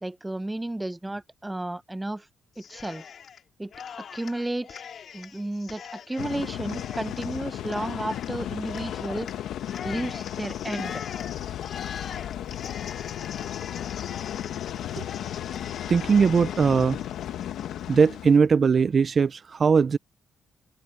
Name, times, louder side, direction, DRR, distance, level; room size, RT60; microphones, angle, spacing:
voice 1, 0.0-2.3 2.6-3.0 3.6-3.7 4.1-4.8 5.1-9.3 9.8-11.0, right 1 dB, 10° right, 0.9 m, -32 dB
Cheering, 2.6-3.4 3.7-18.1, left 7 dB, 55° left, 2.7 m, -42 dB
sound 1, 6.2-18.4, left 11 dB, 75° left, 1.4 m, -35 dB
voice 2, 15.9-17.0 17.9-20.0, right 5 dB, 40° right, 0.6 m, -20 dB
open air
cardioid pair, 90°, 0 cm